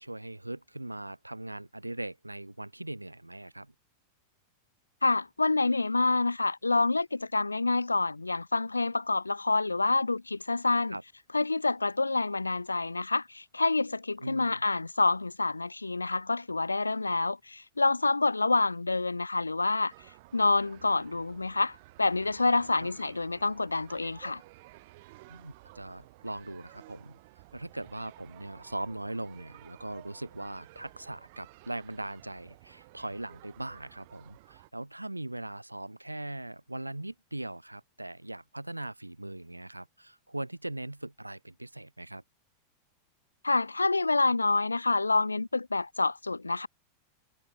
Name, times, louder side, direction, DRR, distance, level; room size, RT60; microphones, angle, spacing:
voice 1, 0.0-3.7 10.9-11.0 14.2-14.6 22.8-22.9 25.3-27.2 27.5-42.2, right 1 dB, 85° right, 1.5 m, -40 dB
voice 2, 5.0-11.0 11.3-19.9 20.3-24.4 43.4-46.7, left 3 dB, 80° left, 0.5 m, -27 dB
sound 1, 19.9-34.7, right 21 dB, 50° right, 3.6 m, -54 dB
figure-of-eight pair, 90°, 0 cm